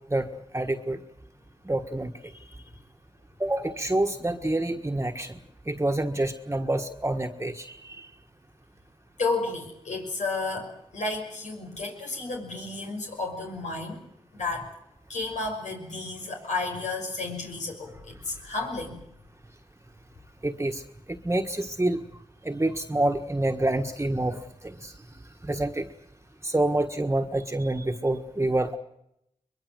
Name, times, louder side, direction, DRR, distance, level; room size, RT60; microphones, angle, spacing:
voice 1, 0.5-1.0 1.6-2.6 3.4-5.4 5.7-8.1 20.4-20.8 21.1-22.0 22.4-24.9 25.4-25.9 26.4-28.8, right 1 dB, 20° right, 4 dB, 1.5 m, -27 dB
voice 2, 9.2-14.0 14.3-14.6 15.1-19.0, left 3 dB, 85° left, 1 dB, 5.8 m, -32 dB
22.0 x 22.0 x 7.8 m, 0.79 s
cardioid pair, 45°, 12 cm